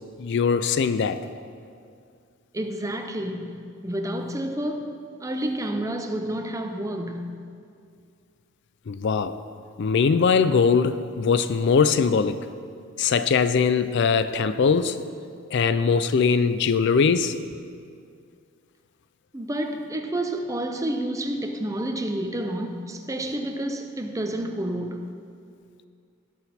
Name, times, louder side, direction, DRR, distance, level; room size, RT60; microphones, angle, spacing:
voice 1, 0.2-1.2 8.9-9.4 9.8-12.5 13.0-15.0 15.5-17.4, left 5 dB, 55° left, 0.4 m, -21 dB
voice 2, 2.5-7.4 19.3-25.1, right 1 dB, 15° right, 0.6 m, -30 dB
18.0 x 6.2 x 4.3 m
head